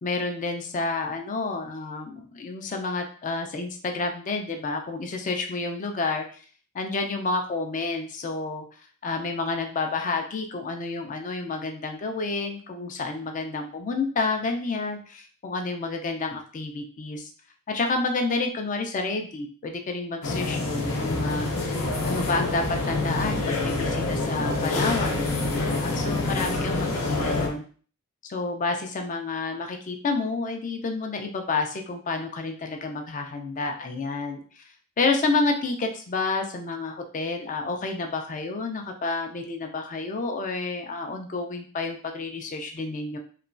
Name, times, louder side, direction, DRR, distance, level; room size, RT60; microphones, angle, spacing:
voice 1, 0.0-6.4 6.7-8.7 9.0-17.3 17.7-21.7 22.0-27.6 28.2-34.6 35.0-43.2, left 3 dB, 35° left, 4 dB, 0.4 m, -29 dB
sound 1, 20.2-27.5, left 2 dB, 75° left, 0.7 m, -26 dB
3.0 x 2.2 x 2.5 m, 0.42 s
head